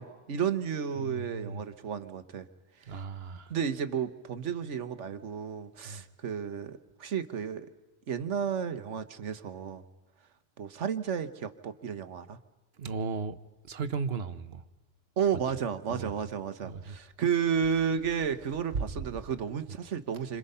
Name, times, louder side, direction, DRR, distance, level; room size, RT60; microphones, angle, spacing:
voice 1, 0.0-2.5 3.5-7.7 8.1-9.8 10.6-12.4 15.2-20.4, right 7 dB, 85° right, 1.5 m, -32 dB
voice 2, 1.0-1.6 2.9-3.5 5.8-6.0 12.8-13.4 13.7-14.6 15.9-16.1 16.6-17.0 18.9-19.0, right 5 dB, 60° right, 1.2 m, -36 dB
28.5 x 26.0 x 5.6 m
omnidirectional pair, 1.2 m